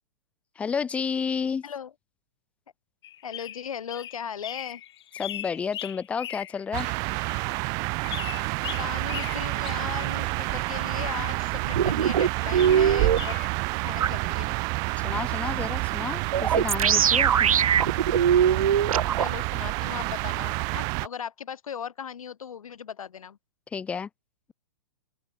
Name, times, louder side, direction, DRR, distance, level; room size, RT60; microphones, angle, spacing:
voice 1, 0.6-1.6 5.2-6.9 15.0-17.5 23.7-24.1, left 6 dB, 5° left, 0.8 m, -31 dB
sound 1, 3.0-7.5 8.0-10.7 12.3-13.5, left 12 dB, 50° left, 2.1 m, -40 dB
voice 2, 3.2-4.8 8.8-13.4 13.8-14.5 19.1-23.4, left 8 dB, 80° left, 4.7 m, -37 dB
sound 2, 6.7-21.1, right 30 dB, 20° right, 0.7 m, -29 dB
sound 3, 11.7-13.2 14.0-14.1 16.3-19.3, right 8 dB, 80° right, 1.3 m, -21 dB
open air
hypercardioid pair, 165°, 18 cm